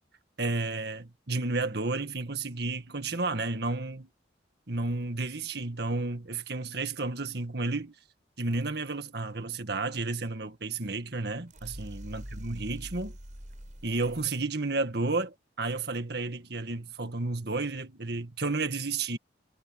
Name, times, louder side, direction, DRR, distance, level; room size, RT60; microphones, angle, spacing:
voice 1, 0.4-4.1 4.7-7.9 8.4-13.2 13.8-19.2, right 3 dB, 60° right, 1.9 m, -32 dB
sound 1, 11.5-14.4, equal, 40° right, 5.7 m, -44 dB
head